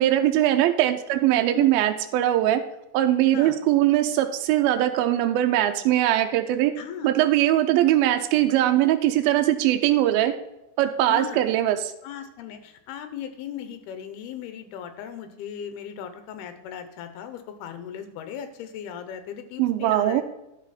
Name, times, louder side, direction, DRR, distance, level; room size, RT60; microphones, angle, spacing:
voice 1, 0.0-2.6 2.9-6.7 7.0-10.3 10.8-11.9 19.6-20.2, right 13 dB, 80° right, 6 dB, 2.3 m, -21 dB
voice 2, 6.8-7.1 11.1-11.4 12.0-20.2, left 9 dB, 80° left, 9 dB, 2.9 m, -37 dB
11.0 x 5.9 x 4.2 m, 0.90 s
omnidirectional pair, 4.5 m